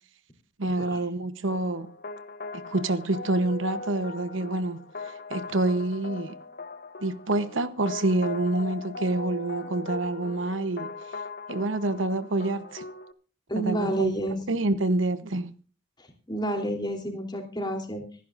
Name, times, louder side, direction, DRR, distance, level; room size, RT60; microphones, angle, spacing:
voice 1, 0.6-1.9 2.5-6.4 7.0-10.9 11.5-12.8 13.6-14.2 14.5-15.5, right 2 dB, 85° right, 1.0 m, -27 dB
sound 1, 1.5-13.1, left 3 dB, 55° left, 0.9 m, -39 dB
voice 2, 13.5-14.4 16.3-18.0, right 1 dB, 25° left, 3.2 m, -29 dB
25.5 x 11.0 x 2.6 m
head